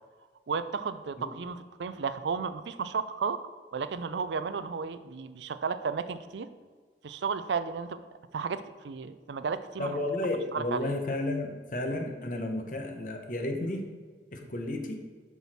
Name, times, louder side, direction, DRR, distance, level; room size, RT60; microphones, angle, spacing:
voice 1, 0.5-3.4 3.7-6.5 7.0-8.0 8.3-10.0 10.5-10.9, right 5 dB, 75° right, 12 dB, 0.4 m, -33 dB
voice 2, 9.8-13.9 14.3-15.0, left 1 dB, 45° left, 4 dB, 0.8 m, -32 dB
7.0 x 6.1 x 4.2 m, 1.5 s
head